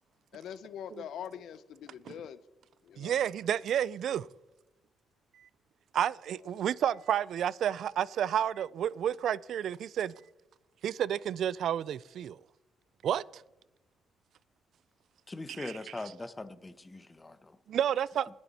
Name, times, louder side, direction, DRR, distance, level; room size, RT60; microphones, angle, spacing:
voice 1, 0.3-2.4 2.8-3.2 6.4-6.6, left 9 dB, 75° left, 0.6 m, -43 dB
voice 2, 3.0-4.3 5.3-5.5 5.9-10.1 10.8-12.4 13.0-13.4 15.5-15.8 17.7-18.3, right 10 dB, 70° right, 0.3 m, -31 dB
voice 3, 15.3-17.6, left 2 dB, 20° left, 0.9 m, -41 dB
20.0 x 6.9 x 4.2 m
cardioid pair, 90°, 0 cm